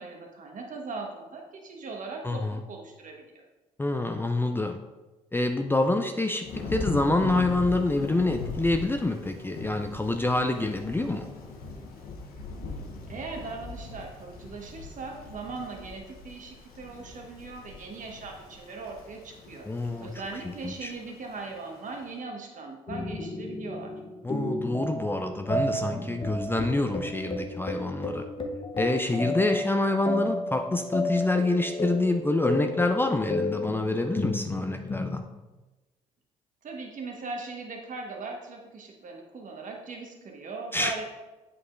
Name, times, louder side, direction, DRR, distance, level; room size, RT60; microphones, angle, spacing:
voice 1, 0.0-3.2 13.1-19.7 20.0-23.9 36.6-41.0, right 3 dB, 50° right, 1 dB, 1.3 m, -39 dB
voice 2, 2.2-2.6 3.8-4.8 5.3-11.3 19.7-20.1 20.6-20.9 24.2-28.2 28.8-35.2 40.7-40.9, left 2 dB, 15° left, 5 dB, 0.5 m, -27 dB
Thunder / Rain, 6.4-22.0, left 3 dB, 65° left, 1.1 m, -40 dB
sound 1, 22.9-35.2, left 1 dB, 30° left, 1.0 m, -32 dB
8.2 x 4.7 x 2.5 m, 1.1 s
hypercardioid pair, 45°, 16 cm